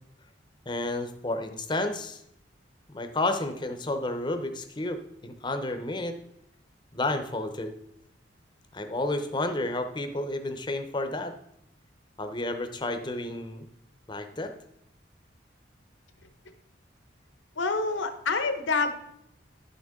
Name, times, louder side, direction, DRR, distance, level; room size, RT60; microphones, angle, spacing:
voice 1, 0.7-2.2 2.9-6.2 6.9-7.7 8.7-11.3 12.2-13.7 14.1-14.5, left 2 dB, 25° left, 8 dB, 0.6 m, -31 dB
voice 2, 17.6-18.9, left 4 dB, 80° left, 8 dB, 1.0 m, -27 dB
11.0 x 6.5 x 3.6 m, 0.78 s
head